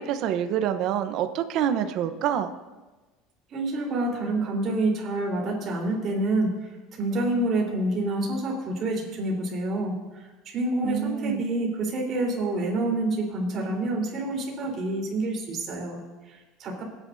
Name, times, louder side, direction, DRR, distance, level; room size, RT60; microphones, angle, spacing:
voice 1, 0.0-2.5 10.8-11.4, right 9 dB, 55° right, 9 dB, 0.9 m, -27 dB
voice 2, 3.5-16.8, right 2 dB, 40° right, -1 dB, 3.9 m, -28 dB
26.0 x 10.0 x 2.7 m, 1.2 s
cardioid pair, 140°, 0 cm